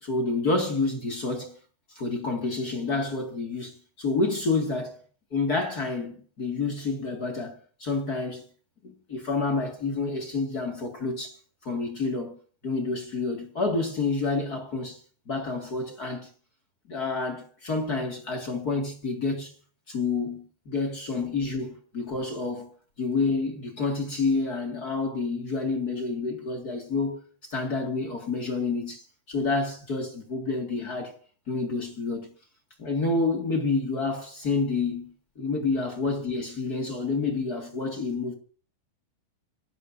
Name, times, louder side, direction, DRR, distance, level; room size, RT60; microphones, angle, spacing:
voice 1, 0.0-1.6 2.0-5.0 5.3-8.4 8.8-11.4 11.6-12.3 12.6-15.0 15.3-16.3 16.9-19.5 19.9-22.7 23.0-31.2 31.5-32.3 32.8-38.3, left 3 dB, 35° left, 1.8 m, -29 dB
26.0 x 13.0 x 2.7 m
omnidirectional pair, 4.4 m